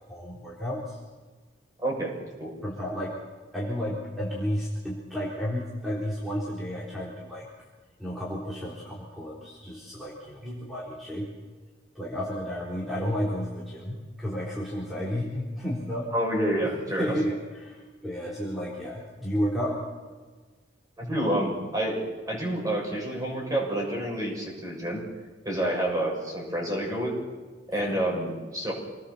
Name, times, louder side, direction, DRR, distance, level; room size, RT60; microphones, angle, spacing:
voice 1, 0.1-1.0 2.6-3.2 3.5-7.5 8.0-11.3 12.0-16.1 17.0-19.8 25.6-25.7 27.8-28.0, equal, ahead, -6 dB, 3.8 m, -32 dB
voice 2, 1.8-2.1 2.4-2.5 10.4-10.5 16.1-17.1 21.0-22.0 22.3-25.0 25.4-27.1 27.7-28.7, right 1 dB, 20° right, -1 dB, 6.8 m, -28 dB
27.0 x 20.0 x 7.2 m, 1.4 s
head